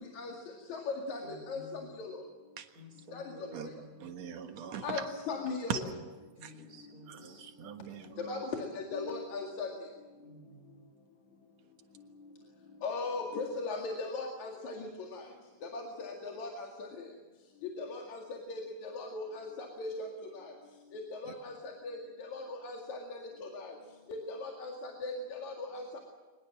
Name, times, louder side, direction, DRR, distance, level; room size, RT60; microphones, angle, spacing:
voice 1, 0.7-2.2 3.1-3.2 3.6-3.7 4.8-5.7 8.2-9.7 12.8-15.3 15.6-17.1 17.6-20.1 20.3-20.5 20.9-23.8 24.1-26.0, left 3 dB, 65° left, 1 dB, 3.4 m, -39 dB
voice 2, 1.2-2.0 2.8-4.0 6.4-7.5 10.2-10.9, equal, 30° right, 4 dB, 4.3 m, -52 dB
voice 3, 4.0-5.1 5.7-5.8 6.4-6.6 7.1-8.4 21.3-21.4, right 8 dB, 60° right, 7 dB, 2.5 m, -40 dB
24.0 x 21.0 x 7.6 m, 1.3 s
omnidirectional pair, 3.7 m